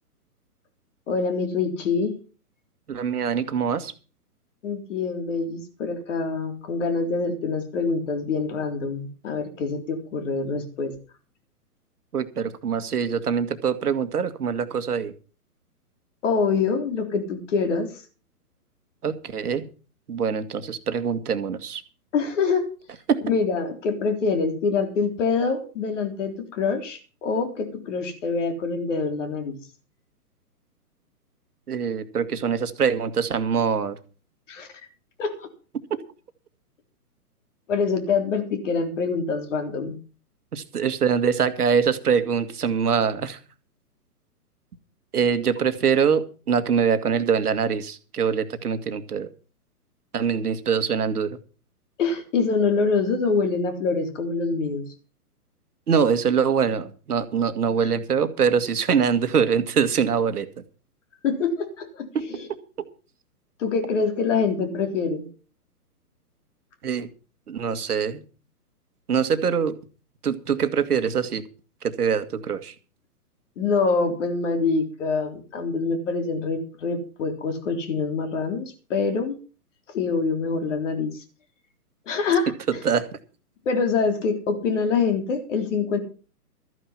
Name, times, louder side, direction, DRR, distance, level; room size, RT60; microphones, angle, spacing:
voice 1, 1.1-2.2 4.6-10.9 16.2-17.9 22.1-22.7 23.2-29.6 34.5-34.7 35.2-35.5 37.7-40.0 52.0-54.8 57.8-57.9 61.2-62.5 63.6-65.3 73.6-79.4 79.9-81.2 82.1-82.8 83.7-86.0, left 4 dB, 50° left, 6 dB, 3.7 m, -25 dB
voice 2, 2.9-3.9 12.1-15.1 19.0-19.6 20.1-21.8 23.1-23.2 31.7-34.0 40.5-43.4 45.1-49.3 50.1-51.4 55.9-60.5 62.1-62.2 66.8-67.1 67.5-68.2 69.1-69.8 70.2-71.4 71.8-72.7 82.8-83.1, right 6 dB, 70° right, 10 dB, 2.0 m, -23 dB
14.0 x 9.7 x 5.8 m, 0.36 s
hypercardioid pair, 135°, 47 cm